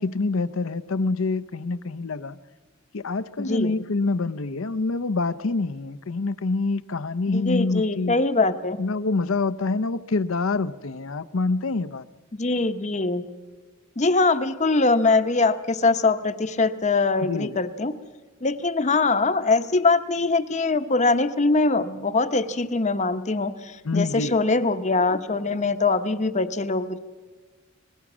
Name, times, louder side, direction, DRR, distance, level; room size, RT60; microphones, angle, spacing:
voice 1, 0.0-2.4 2.9-8.2 8.8-12.0 17.2-17.5 23.8-24.3, left 3 dB, 70° left, 14 dB, 0.7 m, -26 dB
voice 2, 3.4-3.7 7.3-8.8 12.3-13.2 14.0-17.9 18.4-27.0, left 3 dB, 35° left, 10 dB, 0.9 m, -22 dB
24.5 x 20.5 x 6.2 m, 1.4 s
head